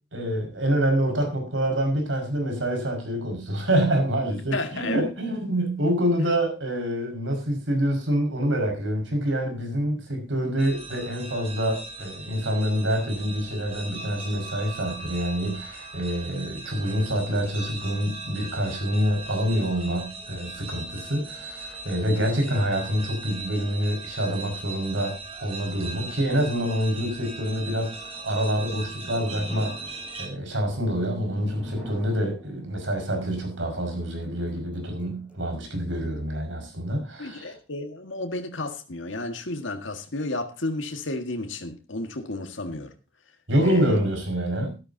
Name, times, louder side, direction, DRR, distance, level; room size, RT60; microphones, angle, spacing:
voice 1, 0.1-29.8 30.2-37.5 43.5-44.7, equal, 85° right, 5.5 m, -26 dB
voice 2, 4.5-5.0 37.2-42.9 43.6-43.9, left 2 dB, 85° left, 1.8 m, -32 dB
sound 1, 10.6-30.3, right 3 dB, 30° right, 2.9 m, -39 dB
sound 2, 28.9-35.7, equal, 5° right, 5.3 m, -44 dB
14.0 x 13.0 x 2.8 m
head